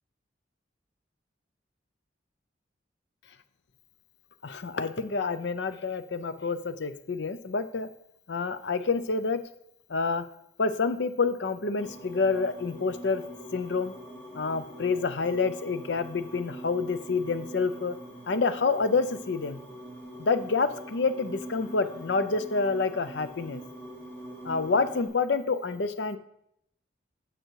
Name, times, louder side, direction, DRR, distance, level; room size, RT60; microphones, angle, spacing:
voice 1, 4.4-7.9 8.3-9.4 9.9-10.2 10.6-13.2 13.5-13.9 14.3-18.0 18.3-19.6 20.2-23.6 24.4-26.2, left 4 dB, 65° left, 11 dB, 0.6 m, -28 dB
sound 1, 11.7-25.1, right 1 dB, 15° left, 3.4 m, -44 dB
9.1 x 6.0 x 4.7 m, 0.76 s
head